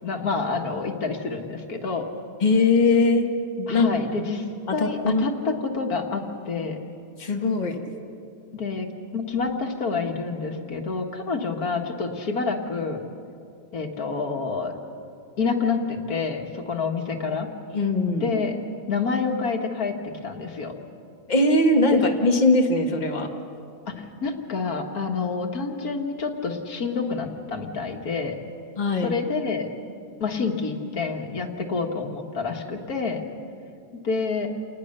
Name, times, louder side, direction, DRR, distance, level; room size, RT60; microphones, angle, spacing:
voice 1, 0.0-2.1 3.7-4.5 4.7-6.8 8.5-8.9 9.1-13.0 13.7-14.7 15.4-17.5 18.2-18.6 18.9-19.9 20.2-20.7 21.9-22.0 23.9-28.4 29.0-29.7 30.2-33.2 34.0-34.5, left 4 dB, 85° left, 4 dB, 2.0 m, -28 dB
voice 2, 2.4-3.3 3.6-3.9 4.7-5.2 7.2-7.8 17.7-18.3 21.3-23.3 28.8-29.2, left 2 dB, 30° left, 2 dB, 1.7 m, -20 dB
28.5 x 19.5 x 6.6 m, 2.5 s
omnidirectional pair, 1.5 m